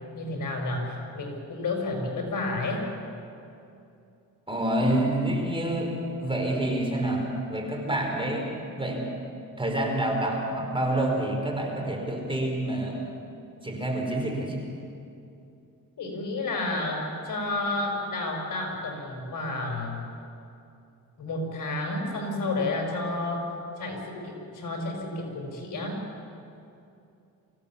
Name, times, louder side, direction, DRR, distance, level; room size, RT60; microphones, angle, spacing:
voice 1, 0.1-2.8 16.0-20.0 21.2-23.4 23.8-26.0, left 2 dB, 55° left, 1 dB, 5.4 m, -31 dB
voice 2, 4.5-5.9 6.2-8.5 8.8-9.1 9.6-13.0 13.6-14.6, right 1 dB, 15° right, 1 dB, 4.5 m, -27 dB
24.5 x 16.0 x 7.2 m, 2.6 s
cardioid pair, 80°, 37 cm